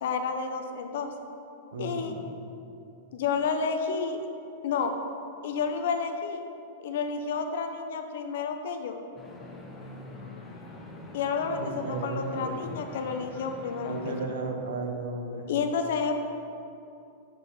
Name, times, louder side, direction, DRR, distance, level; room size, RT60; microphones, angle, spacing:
voice 1, 0.0-1.1 1.8-2.2 3.1-4.2 4.6-4.9 5.4-6.5 6.8-9.0 11.1-14.3 15.5-16.1, left 5 dB, 70° left, 5 dB, 0.7 m, -30 dB
voice 2, 1.7-2.2 11.6-12.6 13.9-15.5, right 3 dB, 85° right, 2 dB, 1.1 m, -34 dB
sound 1, 9.2-14.2, left 1 dB, 10° left, 0.8 m, -44 dB
7.1 x 4.2 x 5.5 m, 2.7 s
supercardioid pair, 150°, 0 cm